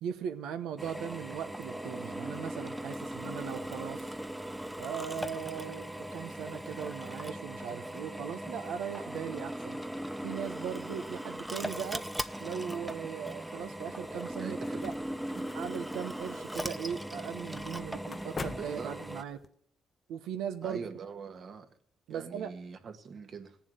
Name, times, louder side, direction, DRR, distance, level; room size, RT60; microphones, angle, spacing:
voice 1, 0.0-4.1 4.8-9.8 10.2-12.0 12.4-14.9 15.5-19.4 20.1-20.8 22.1-22.5, right 8 dB, 90° right, 1.1 m, -39 dB
Drill, 0.8-19.2, right 1 dB, 5° right, 0.7 m, -39 dB
sound 1, 14.1-19.5, left 4 dB, 35° left, 0.5 m, -46 dB
voice 2, 14.4-14.9 15.4-15.5 18.4-18.9 20.6-21.7 22.1-23.6, right 5 dB, 55° right, 1.6 m, -43 dB
17.0 x 7.2 x 9.2 m
cardioid pair, 90°, 0 cm